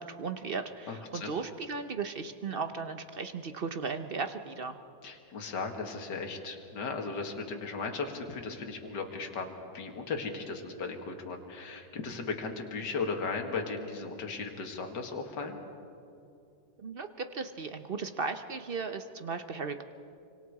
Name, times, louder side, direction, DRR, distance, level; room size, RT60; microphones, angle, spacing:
voice 1, 0.0-4.7 16.8-19.8, right 4 dB, 60° right, 8 dB, 0.5 m, -36 dB
voice 2, 0.9-1.4 5.0-15.6, left 4 dB, 60° left, 3 dB, 2.4 m, -36 dB
26.5 x 25.0 x 4.8 m, 2.7 s
omnidirectional pair, 2.1 m